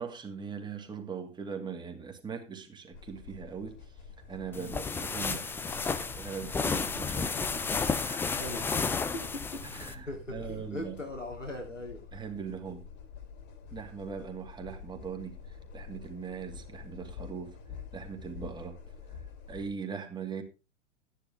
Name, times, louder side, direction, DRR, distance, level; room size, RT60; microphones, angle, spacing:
voice 1, 0.0-3.8 4.3-7.7 8.0-8.4 9.6-11.0 12.1-12.9 13.7-15.4 15.7-17.6 17.9-18.8 19.5-20.4, right 6 dB, 10° right, 2.3 m, -40 dB
sound 1, 2.9-19.7, left 6 dB, 30° left, 2.6 m, -47 dB
sound 2, 4.5-9.9, left 5 dB, 5° left, 0.5 m, -32 dB
voice 2, 8.4-9.4 9.7-12.0, left 1 dB, 90° left, 3.2 m, -40 dB
13.5 x 10.5 x 3.6 m
figure-of-eight pair, 100°, 37 cm